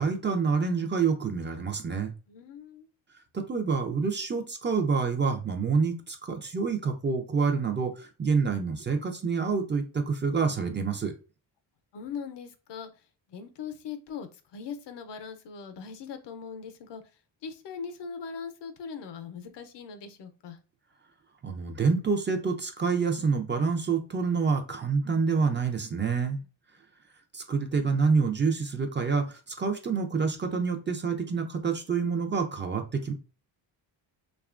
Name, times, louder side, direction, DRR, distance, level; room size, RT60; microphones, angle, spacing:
voice 1, 0.0-2.1 3.3-11.1 21.4-26.4 27.3-33.1, right 5 dB, 25° right, 0.5 m, -27 dB
voice 2, 2.3-2.9 11.9-12.9 13.3-17.0 17.4-20.6, left 6 dB, 60° left, 0.6 m, -40 dB
2.8 x 2.3 x 2.4 m
cardioid pair, 70°, 48 cm